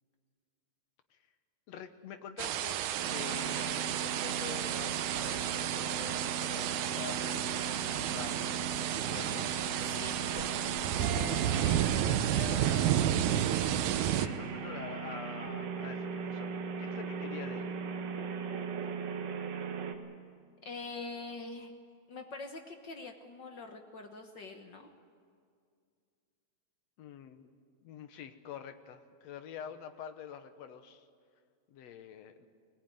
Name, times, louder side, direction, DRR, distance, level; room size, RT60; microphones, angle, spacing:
voice 1, 1.7-2.8 3.1-8.5 9.0-9.5 10.0-10.5 11.1-13.3 14.1-17.7 27.0-27.5 27.8-31.1 31.7-32.5, left 8 dB, 65° left, 8 dB, 2.2 m, -47 dB
sound 1, 2.4-14.3, right 11 dB, 80° right, 2.2 m, -31 dB
sound 2, 3.0-19.9, right 5 dB, 60° right, 2.3 m, -39 dB
voice 2, 9.0-9.4 9.8-10.3 20.6-21.7 22.1-24.9, left 3 dB, 50° left, 4 dB, 1.4 m, -44 dB
21.0 x 19.0 x 9.3 m, 2.2 s
omnidirectional pair, 3.4 m